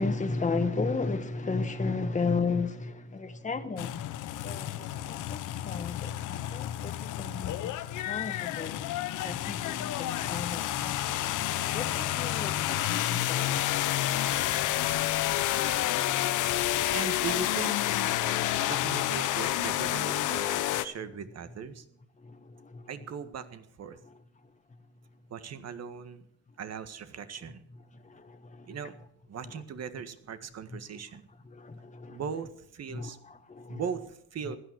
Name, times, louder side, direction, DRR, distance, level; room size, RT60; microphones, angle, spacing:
voice 1, 0.0-4.1 4.4-7.7 8.0-8.9 9.2-11.2 11.7-14.0 22.2-22.9 24.1-24.2 27.9-28.7 29.4-29.5 31.4-32.2 32.9-33.8 34.5-34.6, left 4 dB, 25° left, 1.5 m, -34 dB
sound 1, 3.8-20.9, left 13 dB, 85° left, 1.0 m, -30 dB
voice 2, 16.9-17.8 18.6-21.8 22.9-24.0 25.3-26.3 26.6-27.6 28.6-28.9 29.3-31.3 32.1-33.2 33.7-34.6, right 7 dB, 55° right, 1.7 m, -39 dB
16.0 x 11.5 x 6.3 m
cardioid pair, 90°, 30 cm